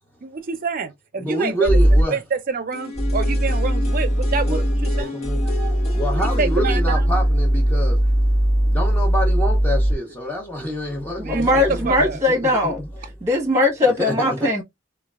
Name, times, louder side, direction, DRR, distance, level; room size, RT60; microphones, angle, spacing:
voice 1, 0.2-1.8 2.1-5.1 6.4-7.0 11.2-12.2, right 5 dB, 50° right, 0.5 m, -27 dB
voice 2, 1.2-2.2 4.5-4.6 4.9-8.0 8.7-12.9 14.0-14.5, equal, 10° left, 0.6 m, -27 dB
sound 1, 1.7-2.0 3.0-9.9 11.0-12.2 12.7-13.1, equal, 80° left, 1.3 m, -20 dB
sound 2, 2.7-8.6 8.9-9.0, left 4 dB, 35° left, 1.3 m, -34 dB
voice 3, 11.2-12.8 13.2-14.6, left 2 dB, 15° right, 1.0 m, -19 dB
3.1 x 2.3 x 2.3 m
head